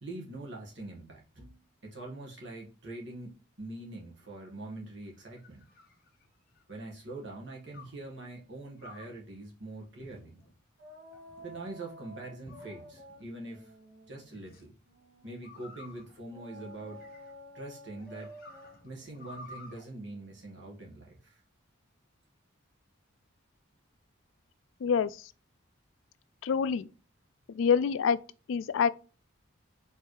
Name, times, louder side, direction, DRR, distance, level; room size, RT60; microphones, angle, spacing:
voice 1, 0.0-5.6 6.7-10.4 11.4-13.7 14.0-14.7 15.2-17.1 17.5-18.3 18.8-21.4, right 2 dB, 60° right, 1.5 m, -44 dB
sound 1, 4.9-6.7 7.7-8.1 8.8-9.2 10.0-10.5 11.1-11.7 12.4-13.2 14.3-14.6 15.4-17.5 18.0-19.8, left 2 dB, 45° left, 1.1 m, -53 dB
sound 2, 10.8-15.4 16.3-21.0, equal, 80° right, 2.0 m, -52 dB
voice 2, 24.8-25.2 26.4-26.9 27.5-28.2 28.5-28.9, left 6 dB, 70° left, 0.3 m, -26 dB
4.6 x 3.3 x 3.1 m
head